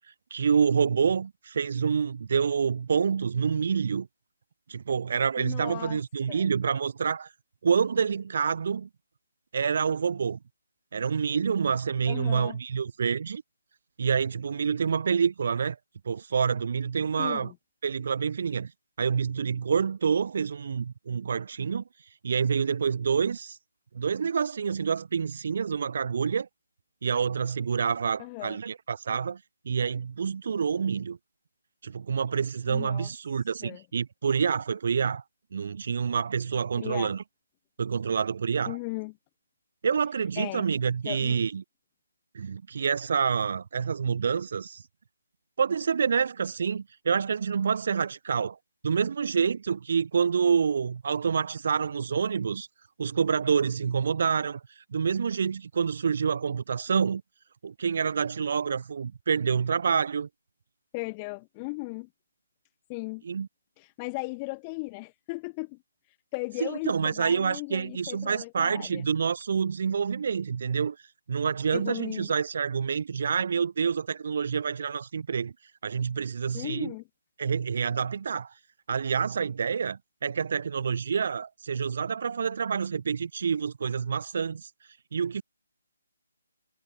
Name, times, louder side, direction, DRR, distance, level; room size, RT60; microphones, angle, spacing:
voice 1, 0.3-4.1 4.7-7.3 7.6-8.9 9.5-10.4 10.9-13.4 14.0-15.8 16.1-17.5 17.8-18.7 19.0-21.8 22.2-23.6 23.9-26.5 27.0-29.4 29.7-31.2 31.8-35.2 35.5-37.2 37.8-38.8 39.8-41.6 42.3-44.8 45.6-48.6 48.8-52.7 53.0-57.2 57.6-60.3 63.3-63.5 66.6-71.0 71.3-75.5 75.8-76.9 77.4-78.5 78.9-84.7 85.1-85.4, right 6 dB, 35° right, 2.1 m, -27 dB
voice 2, 5.4-6.0 6.3-6.5 12.1-12.6 17.2-17.6 28.2-28.6 32.7-33.1 33.6-33.8 36.8-37.1 38.7-39.1 40.4-40.7 41.0-41.5 60.9-62.1 62.9-63.2 63.8-65.8 66.3-69.1 71.7-72.3 76.5-77.0, left 29 dB, 10° left, 4.3 m, -37 dB
hypercardioid pair, 180°, 0 cm